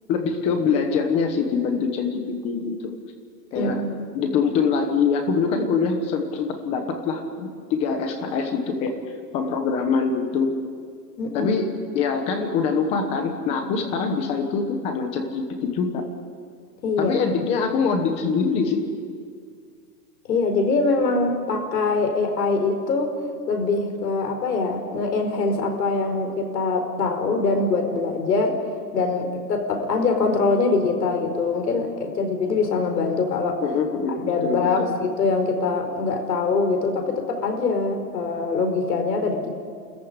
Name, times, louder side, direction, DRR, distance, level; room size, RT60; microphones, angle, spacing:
voice 1, 0.1-2.9 3.5-3.8 4.1-8.9 9.3-10.5 11.3-11.7 11.9-16.0 17.0-18.9 33.6-34.9, left 5 dB, 10° left, 5 dB, 1.1 m, -24 dB
voice 2, 3.5-4.1 11.2-11.5 16.8-17.2 20.3-23.1 23.5-28.6 28.9-33.6 34.1-39.5, left 3 dB, 80° left, 5 dB, 4.8 m, -23 dB
29.5 x 14.5 x 9.8 m, 2.1 s
hypercardioid pair, 180°, 48 cm